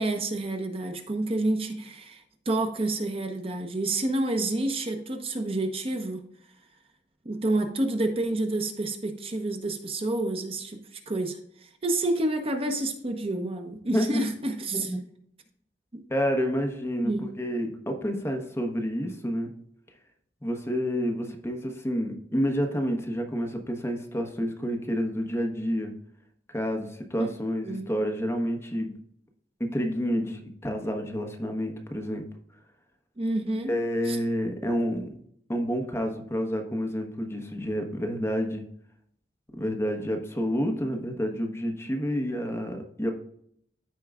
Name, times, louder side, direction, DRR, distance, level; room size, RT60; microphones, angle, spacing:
voice 1, 0.0-6.2 7.2-14.9 15.9-16.0 17.0-17.3 27.2-27.3 27.6-27.9 33.2-33.7 34.1-34.2, right 2 dB, 35° right, 5 dB, 0.9 m, -29 dB
voice 2, 16.1-19.5 20.4-25.9 26.5-28.9 29.6-32.3 33.7-35.1 35.5-38.6 39.6-43.1, equal, 15° left, 3 dB, 1.0 m, -29 dB
14.0 x 4.6 x 2.4 m, 0.68 s
head